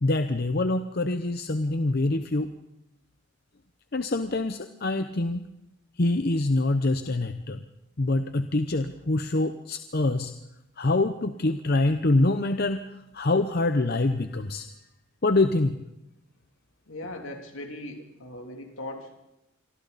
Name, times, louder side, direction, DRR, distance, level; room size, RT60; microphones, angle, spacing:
voice 1, 0.0-2.5 3.9-5.5 6.0-7.6 8.0-10.3 10.8-14.7 15.2-15.8, left 2 dB, 50° left, 8 dB, 0.8 m, -25 dB
voice 2, 16.9-19.1, left 1 dB, 70° left, 2 dB, 3.0 m, -39 dB
27.0 x 24.0 x 4.1 m, 0.89 s
head